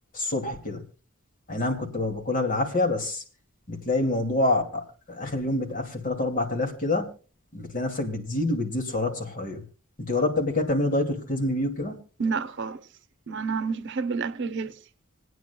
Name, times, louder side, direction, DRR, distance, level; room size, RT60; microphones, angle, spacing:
voice 1, 0.1-0.8 1.5-3.2 3.7-7.1 7.5-9.6 10.1-12.0, left 2 dB, 40° left, 2.5 m, -27 dB
voice 2, 12.2-12.9 13.3-14.8, right 5 dB, 60° right, 0.8 m, -29 dB
27.5 x 9.3 x 2.3 m
head